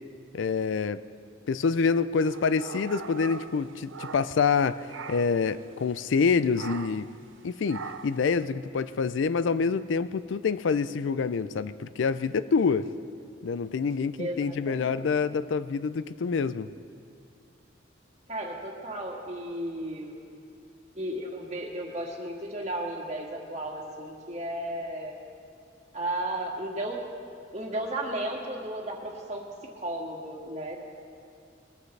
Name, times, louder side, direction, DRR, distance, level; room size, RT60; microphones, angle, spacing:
voice 1, 0.3-1.0 1.5-7.1 7.4-12.9 13.4-16.7, left 5 dB, 80° left, 14 dB, 0.4 m, -26 dB
sound 1, 2.2-4.6 4.9-5.4 6.5-7.1 7.7-8.3, right 5 dB, 90° right, 0.6 m, -41 dB
voice 2, 14.2-15.1 18.3-20.2 20.9-25.1 25.9-27.0 27.5-29.4 29.8-30.8, right 1 dB, 35° right, -1 dB, 1.9 m, -34 dB
21.0 x 14.5 x 3.3 m, 2.6 s
head